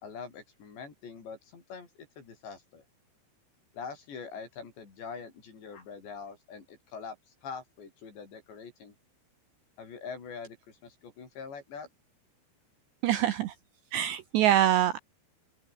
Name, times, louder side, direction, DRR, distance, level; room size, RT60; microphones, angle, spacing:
voice 1, 0.0-1.9 2.2-2.8 3.7-7.2 7.4-8.9 9.8-11.9, left 5 dB, 60° left, 7.4 m, -43 dB
voice 2, 13.0-13.5 13.9-15.0, right 12 dB, 70° right, 3.1 m, -24 dB
open air
omnidirectional pair, 5.6 m